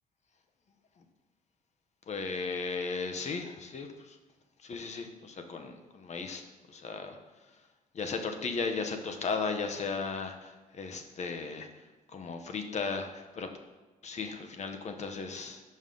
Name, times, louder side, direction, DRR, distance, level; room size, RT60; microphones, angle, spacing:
voice 1, 2.1-4.2 4.6-6.4 6.7-7.2 7.9-11.7 12.1-13.5 14.0-15.6, left 4 dB, 50° left, 5 dB, 0.8 m, -36 dB
5.4 x 5.3 x 3.8 m, 1.2 s
cardioid pair, 75°, 15 cm